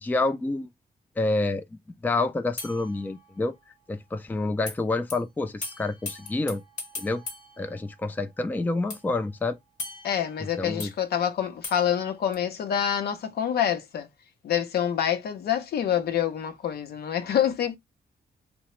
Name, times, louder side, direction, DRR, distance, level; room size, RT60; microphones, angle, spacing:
voice 1, 0.0-0.7 1.2-1.6 2.0-3.6 3.9-6.6 7.0-7.2 7.6-9.6 10.6-10.9, left 2 dB, 10° left, 0.4 m, -28 dB
sound 1, 2.6-3.8 4.7-4.8 5.1-5.2 5.6-8.4 8.9-10.9 11.6-12.3, left 3 dB, 50° left, 1.0 m, -40 dB
voice 2, 10.0-14.1 14.4-17.8, left 9 dB, 70° left, 0.6 m, -26 dB
2.8 x 2.0 x 3.0 m
cardioid pair, 90°, 17 cm